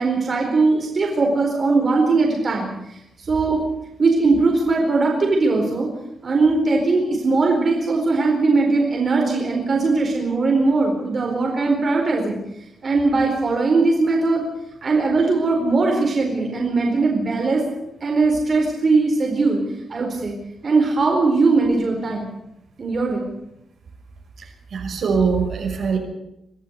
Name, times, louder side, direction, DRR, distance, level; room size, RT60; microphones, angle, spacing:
voice 1, 0.0-2.7 3.2-3.6 4.0-5.9 6.2-12.4 12.8-14.4 14.8-17.6 18.0-19.6 19.9-20.4 20.6-22.3 22.8-23.3, right 3 dB, 40° right, 0 dB, 4.4 m, -19 dB
voice 2, 24.7-26.0, right 5 dB, 70° right, 2 dB, 5.7 m, -22 dB
24.0 x 14.5 x 8.2 m, 0.86 s
wide cardioid pair, 140°, 0 cm